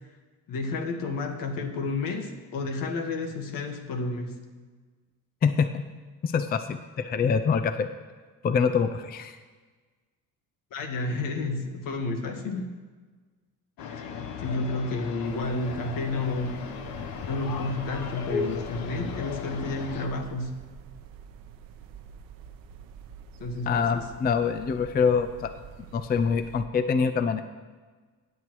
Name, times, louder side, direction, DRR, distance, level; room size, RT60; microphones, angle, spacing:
voice 1, 0.5-4.4 10.7-12.7 14.4-16.6 17.3-20.6 23.4-24.0, left 3 dB, 75° left, 5 dB, 1.5 m, -31 dB
voice 2, 5.4-5.8 6.2-7.9 8.4-9.4 23.7-25.5 25.9-27.4, left 6 dB, 30° left, 10 dB, 0.4 m, -25 dB
sound 1, 13.8-20.1, left 6 dB, 90° left, 1.0 m, -36 dB
sound 2, 15.2-26.6, right 7 dB, 85° right, 0.8 m, -47 dB
18.0 x 8.2 x 3.1 m, 1.4 s
cardioid pair, 120°, 34 cm